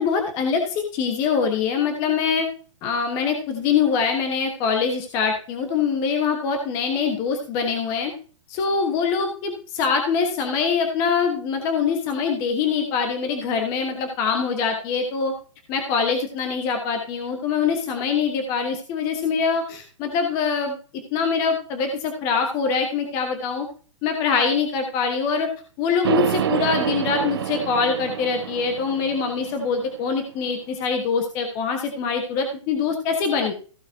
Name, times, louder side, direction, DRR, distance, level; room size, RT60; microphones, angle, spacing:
voice 1, 0.0-2.5 2.8-8.1 8.5-15.3 15.7-20.7 21.1-23.7 24.0-25.5 25.8-33.5, left 5 dB, 20° left, 5 dB, 1.3 m, -24 dB
sound 1, 26.0-30.1, right 10 dB, 50° right, 0.4 m, -27 dB
15.0 x 5.9 x 4.5 m, 0.40 s
hypercardioid pair, 170°, 16 cm